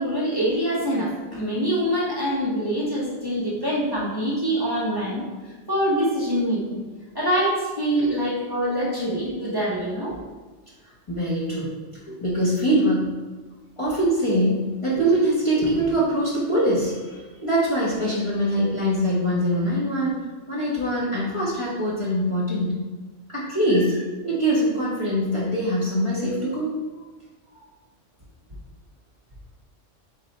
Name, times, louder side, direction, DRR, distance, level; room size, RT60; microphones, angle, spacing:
voice 1, 0.0-6.8 7.1-10.1, equal, 20° right, -7 dB, 0.8 m, -25 dB
voice 2, 11.1-11.7 12.1-13.1 13.8-22.8 23.3-24.0 24.2-26.7, equal, 30° left, -8 dB, 0.8 m, -23 dB
4.0 x 2.6 x 4.1 m, 1.3 s
omnidirectional pair, 1.3 m